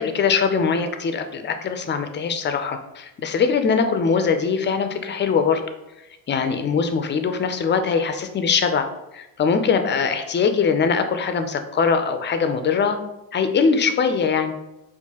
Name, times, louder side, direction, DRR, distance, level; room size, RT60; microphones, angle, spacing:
voice 1, 0.0-5.6 6.3-8.9 9.1-13.0 13.3-14.5, left 5 dB, 25° left, 8 dB, 0.3 m, -22 dB
4.5 x 2.2 x 2.8 m, 0.94 s
supercardioid pair, 70°, 50 cm